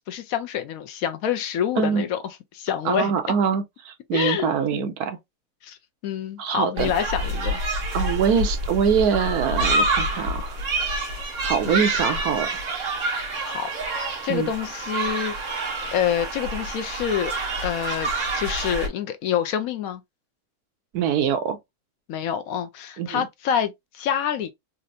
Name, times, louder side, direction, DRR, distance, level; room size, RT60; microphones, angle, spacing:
voice 1, 0.1-2.2 2.5-3.1 4.1-4.9 5.6-5.8 6.0-7.6 11.7-11.8 13.4-15.6 15.9-17.3 17.6-20.0 22.1-24.5, left 9 dB, 70° left, 1.0 m, -27 dB
voice 2, 1.8-2.1 2.8-5.2 6.4-6.9 7.9-10.6 11.4-12.6 14.3-14.5 20.9-21.6 23.0-23.2, right 7 dB, 80° right, 1.2 m, -24 dB
sound 1, 6.8-18.9, right 2 dB, 65° right, 1.8 m, -27 dB
4.2 x 2.6 x 2.6 m
omnidirectional pair, 1.6 m